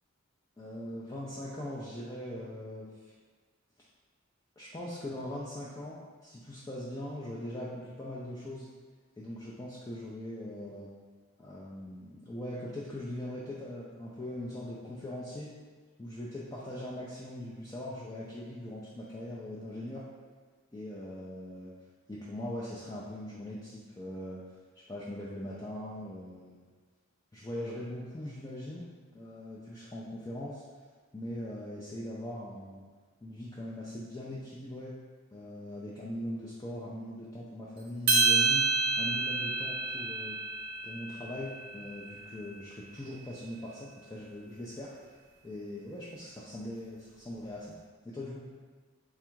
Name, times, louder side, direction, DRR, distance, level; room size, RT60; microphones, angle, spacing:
voice 1, 0.6-2.9 4.6-8.7 9.2-10.9 11.4-15.6 16.0-20.0 20.7-21.7 22.1-24.4 24.9-26.7 27.3-30.6 31.1-32.9 33.2-34.9 35.3-38.7 39.0-40.4 40.8-44.9 45.4-47.8 48.0-48.5, left 1 dB, 15° left, -7 dB, 0.3 m, -41 dB
sound 1, 38.1-42.5, right 4 dB, 45° right, 0.7 m, -29 dB
3.4 x 2.4 x 4.5 m, 1.4 s
head